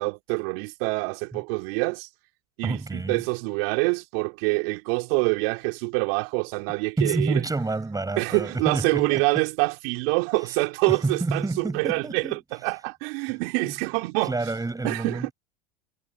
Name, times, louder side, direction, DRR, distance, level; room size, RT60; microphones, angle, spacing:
voice 1, 0.0-2.1 2.6-7.4 8.2-14.3 14.8-15.3, right 30 dB, 65° right, 3.1 m, -26 dB
voice 2, 2.6-3.2 7.0-9.2 10.9-12.3 13.6-13.7 14.2-15.3, right 3 dB, 10° right, 6.7 m, -28 dB
hypercardioid pair, 95°, 32 cm